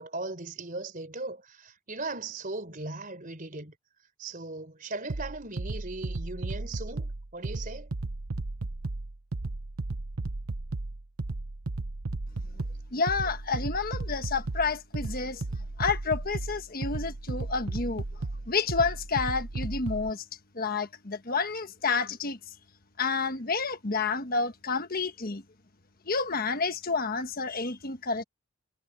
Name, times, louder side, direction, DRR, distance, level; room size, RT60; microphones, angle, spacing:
voice 1, 0.0-3.7 4.2-7.9, right 3 dB, 40° right, 4.4 m, -38 dB
sound 1, 5.1-20.1, right 2 dB, 90° right, 1.0 m, -35 dB
voice 2, 12.9-15.4 15.8-18.0 18.5-20.2 20.5-22.4 23.0-25.4 26.0-28.2, left 4 dB, 45° left, 1.4 m, -29 dB
head